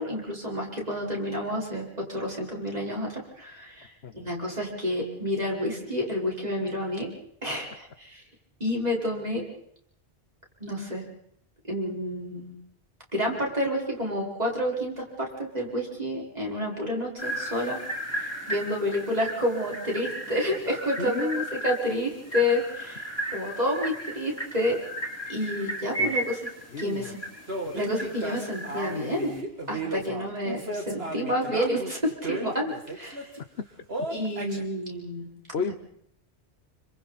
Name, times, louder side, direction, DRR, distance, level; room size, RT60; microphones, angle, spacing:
voice 1, 0.0-3.9 4.1-7.1 7.4-8.2 8.6-9.4 10.6-11.1 11.7-12.5 13.1-17.8 18.1-23.0 23.3-24.8 25.3-26.4 26.8-27.2 27.7-29.3 29.7-33.3 34.1-35.3, left 1 dB, 35° right, -2 dB, 5.6 m, -29 dB
sound 1, 17.2-29.4, right 1 dB, 15° left, 4.0 m, -35 dB
voice 2, 21.0-21.5 26.0-26.2 26.7-27.2 35.5-35.7, left 5 dB, 70° left, 11 dB, 1.3 m, -31 dB
sound 2, 27.5-33.4 33.9-34.6, right 1 dB, 65° right, 3.0 m, -34 dB
28.5 x 25.5 x 4.3 m, 0.68 s
omnidirectional pair, 1.1 m